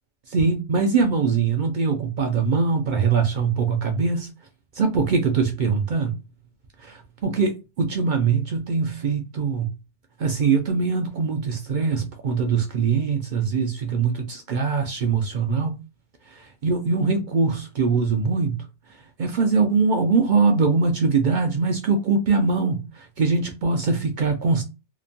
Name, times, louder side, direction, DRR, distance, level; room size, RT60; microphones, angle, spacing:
voice 1, 0.3-4.3 4.7-6.2 6.8-9.7 10.2-15.8 16.3-18.7 19.2-24.6, right 4 dB, 55° right, 0.5 m, -22 dB
2.9 x 2.1 x 2.5 m
omnidirectional pair, 1.2 m